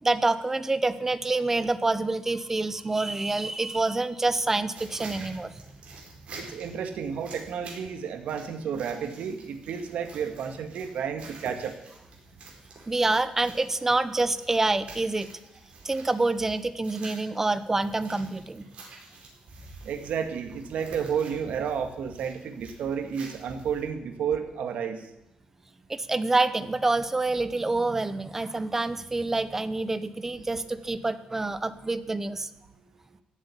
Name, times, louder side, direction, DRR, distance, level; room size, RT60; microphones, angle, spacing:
voice 1, 0.0-5.5 12.9-15.3 15.8-18.6 25.9-32.5, right 2 dB, 15° right, 14 dB, 0.8 m, -27 dB
sound 1, 4.7-23.9, right 3 dB, 50° right, 4.7 m, -48 dB
voice 2, 6.4-11.8 19.8-25.1, right 7 dB, 75° right, 7 dB, 2.0 m, -31 dB
15.0 x 7.8 x 9.9 m, 0.85 s
cardioid pair, 150°, 2 cm